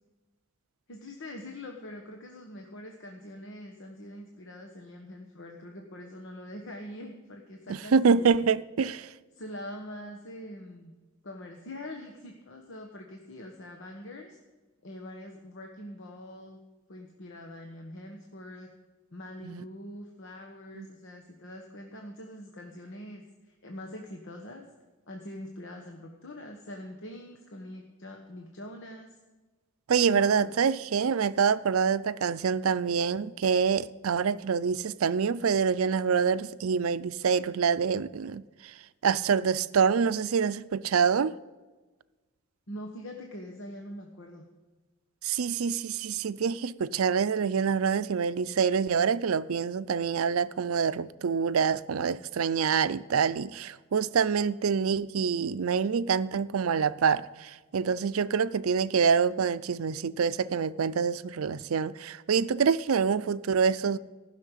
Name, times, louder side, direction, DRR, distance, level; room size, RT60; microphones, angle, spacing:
voice 1, 0.9-8.4 9.3-10.9 11.2-14.4 14.8-16.6 16.9-18.7 19.1-24.7 25.1-29.1 30.1-30.5 42.7-44.5, left 1 dB, 60° left, 1.2 m, -43 dB
voice 2, 7.7-9.1 19.4-19.6 20.8-20.9 29.9-38.7 39.0-41.3 45.2-64.0, right 6 dB, 85° right, 0.5 m, -26 dB
15.0 x 6.5 x 9.1 m
head